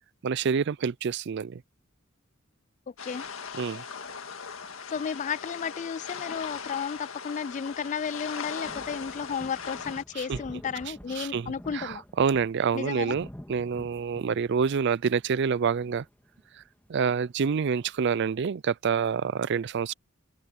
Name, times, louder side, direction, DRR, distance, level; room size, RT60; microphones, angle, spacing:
voice 1, 0.2-1.6 3.6-3.8 10.2-10.4 11.2-16.0 16.9-19.9, right 6 dB, 60° right, 0.4 m, -27 dB
sound 1, 3.0-10.0, left 6 dB, 85° left, 1.8 m, -39 dB
voice 2, 4.9-12.0 12.7-13.2, left 6 dB, 35° left, 0.3 m, -33 dB
sound 2, 8.6-17.8, equal, 10° left, 1.8 m, -48 dB
head